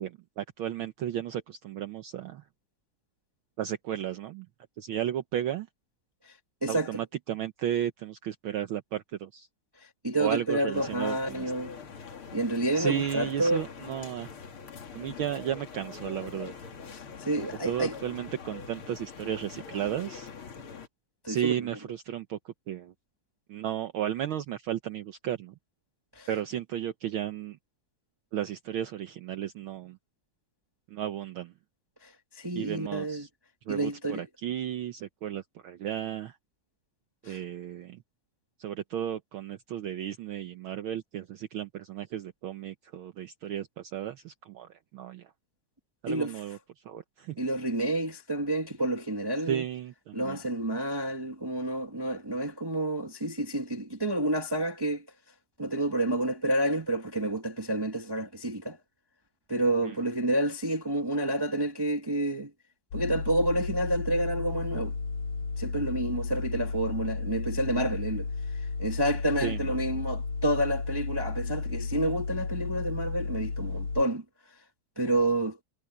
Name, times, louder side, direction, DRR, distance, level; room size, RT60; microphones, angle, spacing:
voice 1, 0.0-2.4 3.6-4.5 4.8-5.7 6.7-9.5 10.2-11.5 12.8-14.3 14.9-16.5 17.4-20.3 21.3-22.9 23.5-25.5 26.3-27.6 28.3-30.0 30.9-31.5 32.6-33.3 33.7-36.4 37.2-38.0 38.6-45.2 46.0-46.6 46.8-47.4 49.4-50.4 59.8-60.0 69.4-69.6, right 10 dB, 75° right, 1.2 m, -34 dB
voice 2, 10.0-11.8 12.3-13.6 16.9-17.9 21.2-21.5 26.1-26.3 32.0-32.1 32.4-33.3 33.7-34.3 37.3-37.4 46.1-46.3 47.4-49.6 50.1-55.0 55.6-58.8 59.5-62.5 62.9-64.9 65.6-68.3 68.8-74.2 75.0-75.6, right 1 dB, 40° right, 0.3 m, -29 dB
sound 1, 10.7-20.9, left 6 dB, 50° left, 2.6 m, -43 dB
sound 2, 62.9-74.0, left 4 dB, 75° left, 5.6 m, -33 dB
omnidirectional pair, 3.3 m